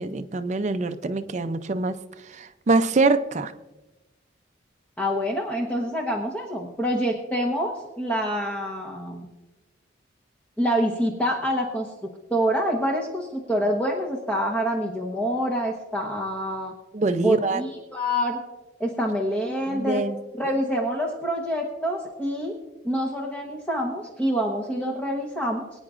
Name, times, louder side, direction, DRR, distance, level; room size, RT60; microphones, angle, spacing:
voice 1, 0.0-2.0 2.3-3.5 16.9-17.6 19.7-20.2, right 3 dB, 35° right, 0.5 m, -24 dB
voice 2, 5.0-9.3 10.6-11.9 12.3-16.7 17.2-18.4 18.8-20.0 20.4-22.5 22.8-25.6, equal, 5° left, 1.1 m, -26 dB
23.0 x 9.5 x 2.5 m
head